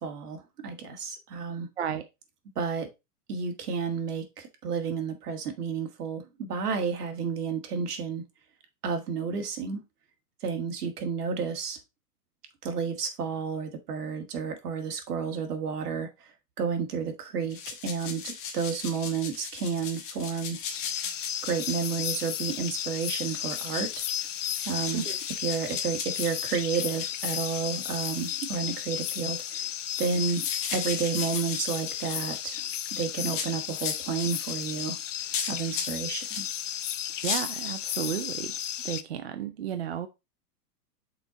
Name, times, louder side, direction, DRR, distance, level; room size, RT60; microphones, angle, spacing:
voice 1, 0.0-1.7 2.6-2.9 3.3-8.2 8.8-9.8 10.4-11.8 12.6-16.3 16.6-20.6 21.4-24.0 24.7-25.1 25.4-29.7 30.0-32.6 32.9-35.0 35.5-36.5, right 6 dB, 70° right, 1.8 m, -31 dB
sound 1, 17.5-36.5 37.0-37.4, left 6 dB, 30° left, 1.0 m, -38 dB
sound 2, 20.7-39.0, left 11 dB, 50° left, 0.5 m, -34 dB
voice 2, 37.2-38.5 38.8-40.1, right 9 dB, 45° right, 0.4 m, -33 dB
5.9 x 4.4 x 3.8 m
hypercardioid pair, 170°, 48 cm